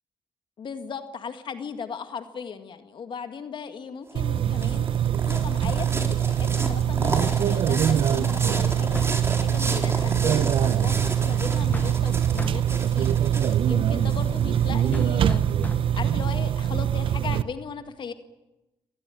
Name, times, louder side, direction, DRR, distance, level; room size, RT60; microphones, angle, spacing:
voice 1, 0.6-18.1, left 6 dB, 60° left, 8 dB, 1.9 m, -37 dB
sound 1, 4.1-14.9, right 2 dB, 30° right, 4.3 m, -33 dB
sound 2, 4.1-17.4, right 10 dB, 70° right, 0.8 m, -23 dB
sound 3, 8.9-9.3 11.7-12.1 12.4-12.8 14.9-16.1, left 2 dB, 20° left, 0.9 m, -36 dB
25.5 x 18.5 x 9.1 m, 1.0 s
supercardioid pair, 60°, 9 cm